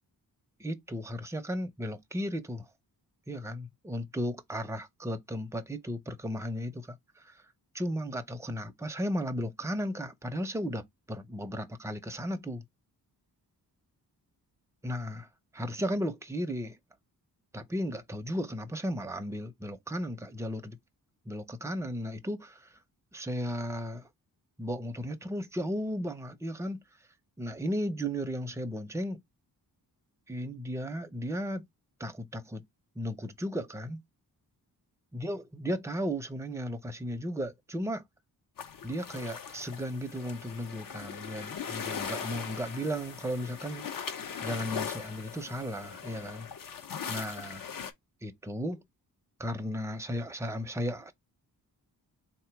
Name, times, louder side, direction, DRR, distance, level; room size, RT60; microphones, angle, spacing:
voice 1, 0.6-2.7 3.3-7.4 7.7-12.6 14.8-15.3 15.5-16.8 17.5-20.8 21.3-22.8 23.1-24.1 24.6-26.8 27.4-29.2 30.3-31.6 32.0-32.6 33.0-34.0 35.1-38.0 38.8-43.9 44.4-46.5 47.1-47.6 48.2-48.8 49.4-51.1, equal, 10° right, 0.5 m, -35 dB
sound 1, 38.6-47.9, left 7 dB, 60° left, 0.7 m, -40 dB
3.7 x 2.9 x 4.6 m
wide cardioid pair, 120°, 38 cm